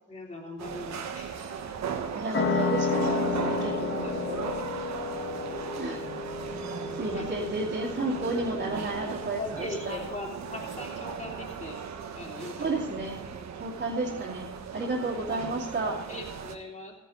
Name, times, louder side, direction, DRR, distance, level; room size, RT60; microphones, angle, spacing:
voice 1, 0.1-1.4 4.0-4.1 4.6-4.7 7.1-7.3 9.4-11.8 12.1-13.0 15.3-15.4 16.1-17.0, left 2 dB, 25° left, -2 dB, 3.4 m, -40 dB
sound 1, 0.6-16.5, right 6 dB, 65° right, 1.3 m, -37 dB
voice 2, 2.1-4.5 5.8-6.0 6.9-10.0 12.6-13.1 13.6-16.0, right 2 dB, 40° right, -6 dB, 2.5 m, -32 dB
sound 2, 2.3-9.5, left 4 dB, 40° left, 1.0 m, -32 dB
16.5 x 10.0 x 3.9 m, 1.2 s
wide cardioid pair, 170°, 30 cm